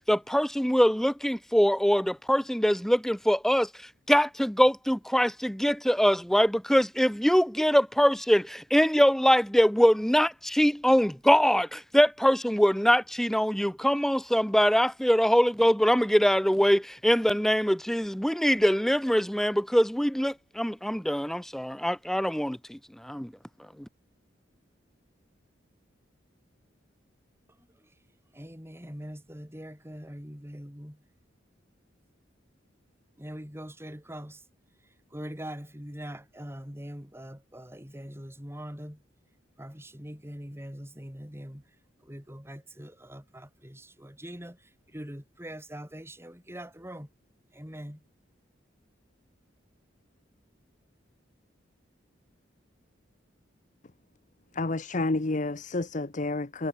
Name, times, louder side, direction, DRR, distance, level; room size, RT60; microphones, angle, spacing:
voice 1, 0.1-3.7 4.1-23.3, equal, ahead, 0.7 m, -23 dB
voice 2, 28.3-31.0 33.2-34.4 35.1-39.0 39.6-41.6 42.0-44.6 44.9-47.1 47.5-48.0, equal, 15° right, 4.5 m, -42 dB
voice 3, 54.6-56.7, left 2 dB, 40° left, 0.9 m, -29 dB
head